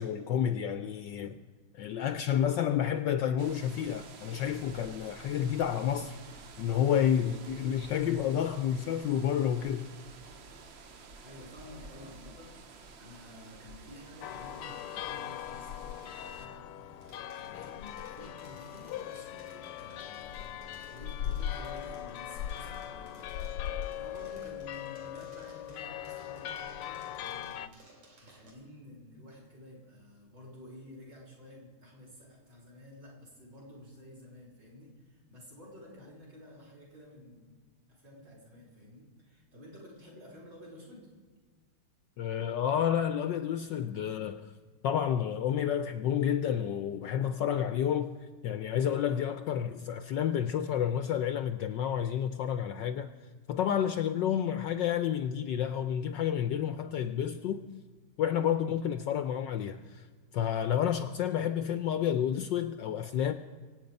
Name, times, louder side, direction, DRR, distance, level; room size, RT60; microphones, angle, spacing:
voice 1, 0.0-1.4 1.7-9.9 42.2-44.5 44.8-48.2 48.4-53.1 53.5-57.6 58.2-60.1 60.3-63.3, left 9 dB, 70° left, 1.1 m, -30 dB
sound 1, 3.4-16.5, right 4 dB, 70° right, 0.6 m, -51 dB
voice 2, 11.2-23.3 23.6-41.1, left 1 dB, 50° right, 5.5 m, -52 dB
sound 2, 14.2-27.7, left 10 dB, 85° left, 1.6 m, -39 dB
sound 3, 17.0-28.5, right 3 dB, 90° right, 3.7 m, -58 dB
25.0 x 8.9 x 5.3 m
omnidirectional pair, 2.4 m